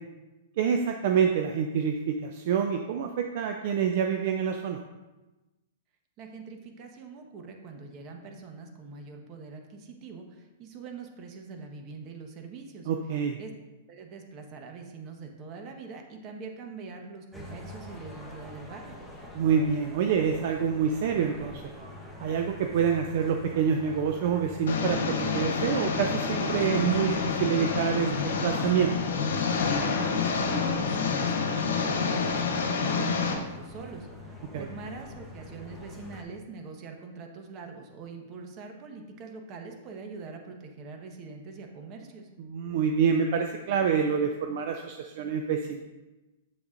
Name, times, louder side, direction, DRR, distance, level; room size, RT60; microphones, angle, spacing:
voice 1, 0.6-4.8 12.9-13.4 19.3-21.6 22.2-28.9 34.5-34.7 42.4-45.8, right 7 dB, 55° right, 4 dB, 0.5 m, -27 dB
voice 2, 6.2-12.9 13.4-13.5 13.9-19.0 30.1-34.1 34.5-42.3, right 4 dB, 35° right, 3 dB, 1.2 m, -43 dB
sound 1, 17.3-36.2, left 1 dB, 5° right, 1.2 m, -45 dB
Engine, 24.7-33.3, left 5 dB, 75° left, 1.1 m, -28 dB
7.7 x 7.2 x 2.6 m, 1.1 s
hypercardioid pair, 125°, 0 cm